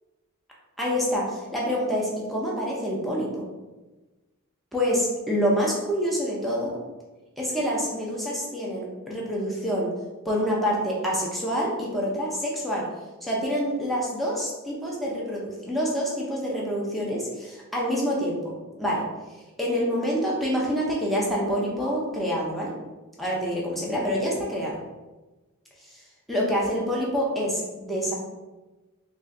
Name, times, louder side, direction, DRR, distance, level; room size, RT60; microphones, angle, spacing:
voice 1, 0.8-3.4 4.7-6.8 7.4-9.9 10.2-12.8 13.2-18.5 18.8-19.0 19.6-22.7 23.2-24.8 25.9-26.0 26.3-28.1, equal, ahead, -5 dB, 0.6 m, -27 dB
3.2 x 2.4 x 3.7 m, 1.2 s
head